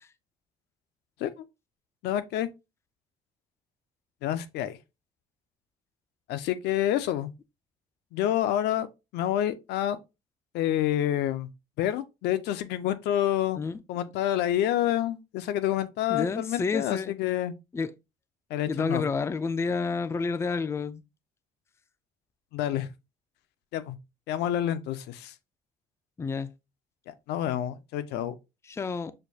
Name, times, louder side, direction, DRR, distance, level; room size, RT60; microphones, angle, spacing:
voice 1, 2.0-2.5 4.2-4.8 6.3-7.3 8.1-8.9 9.1-10.0 10.5-11.5 11.8-13.6 13.9-17.5 18.5-19.0 22.5-22.9 23.7-24.0 24.3-25.3 27.1-28.3, left 12 dB, 80° left, 0.5 m, -28 dB
voice 2, 16.1-17.1 17.7-17.9 18.7-21.0 26.2-26.5 28.7-29.1, left 4 dB, 15° left, 0.3 m, -29 dB
6.4 x 2.3 x 2.7 m
cardioid pair, 110°, 17 cm